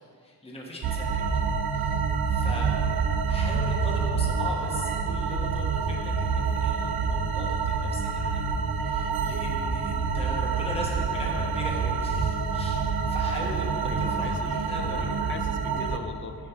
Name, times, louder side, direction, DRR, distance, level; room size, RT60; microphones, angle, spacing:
voice 1, 0.2-1.4 1.7-2.0 2.3-2.7 3.3-15.1 15.6-15.9, left 1 dB, 15° left, -2 dB, 1.2 m, -40 dB
sound 1, 0.8-16.0, right 5 dB, 70° right, 0.7 m, -27 dB
voice 2, 13.8-16.5, left 4 dB, 30° left, 7 dB, 0.5 m, -41 dB
9.5 x 4.4 x 6.9 m, 2.4 s
wide cardioid pair, 125°, 38 cm